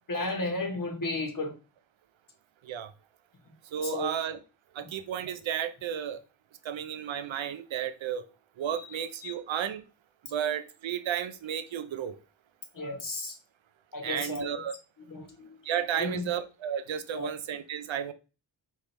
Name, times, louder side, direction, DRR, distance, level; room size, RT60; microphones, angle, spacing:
voice 1, 0.1-1.5 3.8-4.1 4.8-4.9 9.2-9.3 12.7-13.4 13.9-14.6 15.1-15.6 15.9-16.3 17.1-17.3, left 2 dB, 45° left, 1.4 m, -33 dB
voice 2, 3.7-4.4 4.7-6.2 6.6-8.2 8.6-9.8 10.3-12.2 14.0-14.7 15.6-18.1, right 9 dB, 90° right, 0.6 m, -33 dB
4.4 x 3.5 x 3.3 m
cardioid pair, 65°, 45 cm